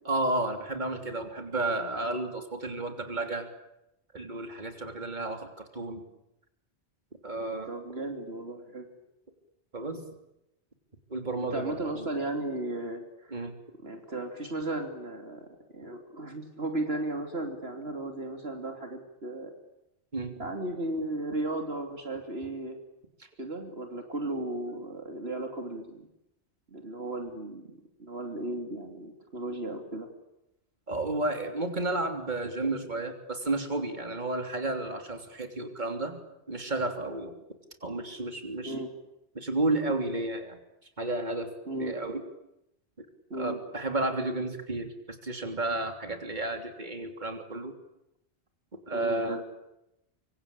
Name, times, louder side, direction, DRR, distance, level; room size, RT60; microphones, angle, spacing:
voice 1, 0.0-3.5 4.1-6.0 7.2-7.7 9.7-10.0 11.1-12.1 13.3-13.5 20.1-20.4 30.9-36.2 36.5-37.3 37.8-38.7 39.3-40.6 41.0-41.5 41.8-42.2 43.0-43.1 43.3-47.7 48.9-49.4, right 2 dB, 40° right, 5 dB, 3.4 m, -32 dB
voice 2, 7.7-8.9 11.4-13.5 13.8-15.5 15.7-19.5 20.4-22.8 23.4-26.1 26.7-30.1 38.6-38.9 41.6-42.0 43.3-43.6 48.9-49.4, right 2 dB, 60° right, 4 dB, 3.2 m, -35 dB
25.5 x 24.5 x 8.8 m, 0.87 s
omnidirectional pair, 1.2 m